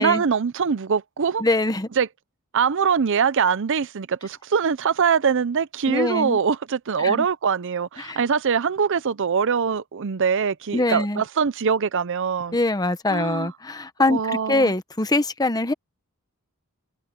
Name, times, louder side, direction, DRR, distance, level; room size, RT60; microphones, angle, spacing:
voice 1, 0.0-1.4 2.0-2.1 2.5-12.6 13.1-13.5 14.1-14.7, right 6 dB, 60° right, 0.6 m, -23 dB
voice 2, 1.4-1.9 5.9-6.4 7.0-7.3 8.0-8.2 10.7-11.2 12.5-15.7, left 2 dB, 20° left, 1.1 m, -23 dB
head